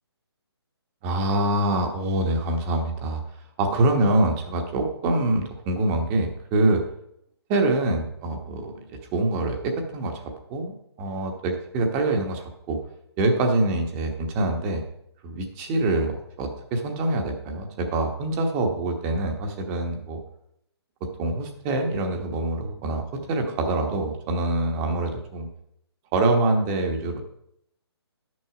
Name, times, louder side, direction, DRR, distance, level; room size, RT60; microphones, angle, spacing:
voice 1, 1.0-3.2 3.6-6.8 7.5-12.8 13.2-14.8 15.2-20.2 21.2-25.5 26.1-27.2, right 2 dB, 20° right, 4 dB, 1.1 m, -25 dB
10.5 x 6.3 x 4.9 m, 0.77 s
hypercardioid pair, 150°, 14 cm